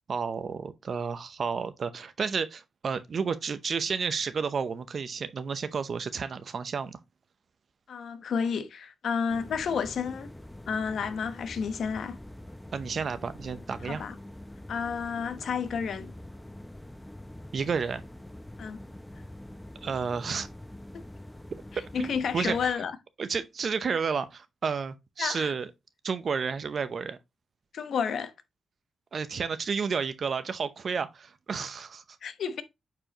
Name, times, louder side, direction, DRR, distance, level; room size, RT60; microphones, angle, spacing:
voice 1, 0.1-7.0 12.7-14.0 17.5-18.0 19.8-20.5 21.7-22.8 23.2-25.7 26.0-27.2 29.1-32.0, right 5 dB, 55° right, 0.7 m, -31 dB
voice 2, 7.9-10.3 10.7-12.2 13.8-14.1 14.7-16.1 18.6-18.8 21.9-23.0 25.2-25.5 27.7-28.3 32.2-32.6, left 6 dB, 75° left, 1.0 m, -31 dB
sound 1, 9.3-22.7, left 1 dB, 10° left, 0.7 m, -45 dB
8.9 x 4.8 x 2.9 m
cardioid pair, 100°, 0 cm